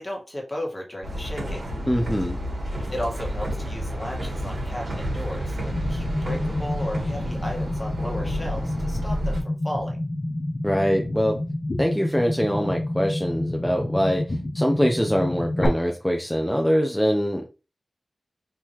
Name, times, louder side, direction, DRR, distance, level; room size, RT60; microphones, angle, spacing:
voice 1, 0.0-1.7 2.9-10.0, left 1 dB, 20° left, -1 dB, 1.7 m, -34 dB
sound 1, 1.0-9.4, equal, 70° right, 2.7 m, -30 dB
voice 2, 1.9-2.4 10.6-11.4 11.8-17.5, equal, ahead, 2 dB, 0.6 m, -23 dB
sound 2, 5.7-15.7, left 1 dB, 45° left, 1.1 m, -29 dB
4.4 x 3.8 x 3.1 m, 0.32 s
wide cardioid pair, 85°, 0 cm